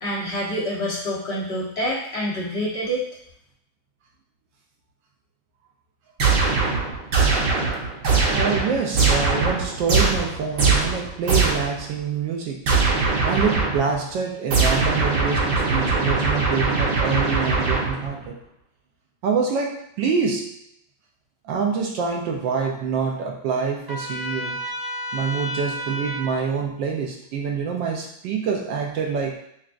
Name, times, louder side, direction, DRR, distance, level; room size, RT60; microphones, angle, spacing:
voice 1, 0.0-3.1, equal, 70° left, -6 dB, 0.6 m, -27 dB
sound 1, 6.2-11.8 12.7-14.0 14.5-18.2, right 4 dB, 60° right, 1.4 m, -21 dB
voice 2, 8.3-12.6 13.0-18.3 19.2-20.6 21.4-24.6 25.1-29.4, right 6 dB, 75° right, 0 dB, 1.2 m, -26 dB
Trumpet, 23.9-26.4, equal, 30° right, 0.4 m, -31 dB
5.8 x 2.2 x 2.4 m, 0.75 s
omnidirectional pair, 2.2 m